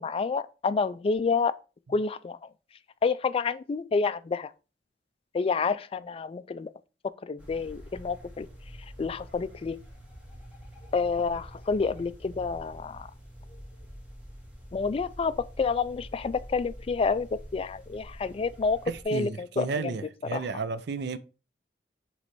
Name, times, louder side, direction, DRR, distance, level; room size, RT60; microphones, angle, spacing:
voice 1, 0.0-1.6 1.9-2.4 3.0-4.5 5.3-6.7 7.0-8.5 9.0-9.8 10.9-13.1 14.7-19.9 20.3-20.4, left 4 dB, 30° left, 0.3 m, -29 dB
sound 1, 7.4-19.0, equal, 10° right, 1.5 m, -46 dB
voice 2, 18.9-21.2, right 4 dB, 65° right, 0.5 m, -33 dB
6.6 x 3.2 x 4.5 m
head